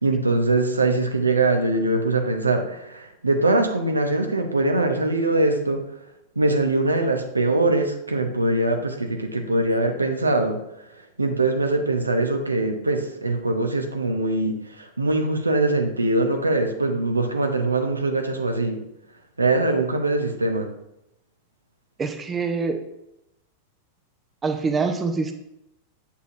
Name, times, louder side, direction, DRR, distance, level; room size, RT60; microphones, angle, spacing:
voice 1, 0.0-5.8 6.4-10.6 11.2-18.8 19.4-20.7, right 2 dB, 80° right, 5 dB, 0.9 m, -22 dB
voice 2, 22.0-22.8 24.4-25.3, right 4 dB, 20° right, 7 dB, 0.8 m, -25 dB
8.5 x 8.1 x 2.6 m, 0.86 s
figure-of-eight pair, 90°, 0 cm